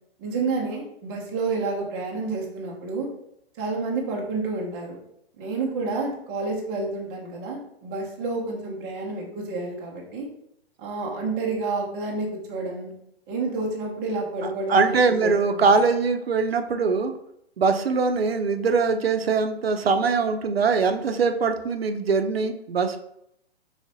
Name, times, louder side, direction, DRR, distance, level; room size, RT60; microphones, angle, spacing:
voice 1, 0.2-3.1 3.6-5.0 5.4-10.3 10.8-12.9 13.3-15.6, right 3 dB, 10° right, -2 dB, 0.4 m, -29 dB
voice 2, 14.4-17.1 17.6-23.0, right 4 dB, 70° right, 7 dB, 0.5 m, -22 dB
4.8 x 3.2 x 2.6 m, 0.76 s
figure-of-eight pair, 120°, 32 cm